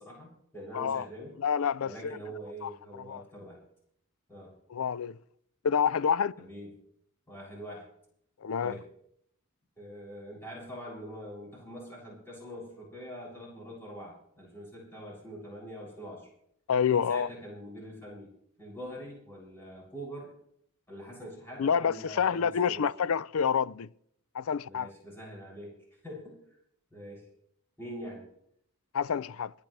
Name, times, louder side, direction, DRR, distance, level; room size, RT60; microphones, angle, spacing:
voice 1, 0.0-1.3 1.8-3.6 4.3-4.5 6.4-6.7 7.3-7.9 8.6-8.8 9.8-16.3 16.9-18.3 18.6-20.3 20.9-22.9 24.7-25.7 26.0-26.4 26.9-27.2 27.8-28.2, equal, 10° left, 7.0 m, -44 dB
voice 2, 0.7-1.0 1.4-2.2 2.6-2.7 3.1-3.2 4.7-5.2 5.6-6.3 8.4-8.8 16.7-17.3 21.6-23.9 24.3-24.9 28.9-29.5, left 7 dB, 75° left, 0.4 m, -28 dB
27.0 x 10.5 x 3.3 m
head